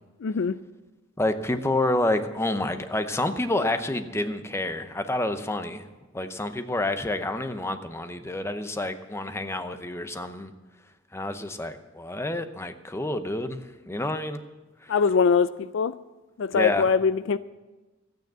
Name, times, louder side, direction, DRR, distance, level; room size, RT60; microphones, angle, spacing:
voice 1, 0.2-0.6 14.9-15.9 16.4-17.4, left 5 dB, 65° left, 0.4 m, -22 dB
voice 2, 1.2-5.9 6.1-10.5 11.1-14.4 14.8-14.9 16.5-16.9, left 2 dB, 15° left, 0.7 m, -28 dB
13.5 x 9.2 x 7.4 m
head